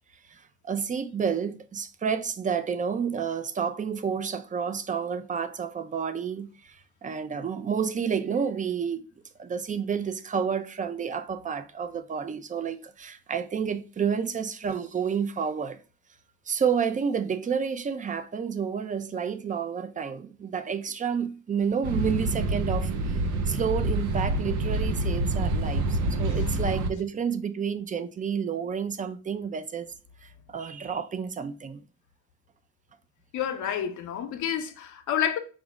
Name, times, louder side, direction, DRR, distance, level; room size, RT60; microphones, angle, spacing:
voice 1, 0.3-9.0 9.4-15.8 16.5-22.9 23.5-29.9 30.2-31.8, right 6 dB, 25° right, 0.4 m, -30 dB
sound 1, 21.8-26.9, right 2 dB, 90° right, 0.6 m, -27 dB
voice 2, 33.3-35.4, left 9 dB, 80° left, 0.8 m, -29 dB
4.9 x 2.1 x 4.7 m
cardioid pair, 90°, 30 cm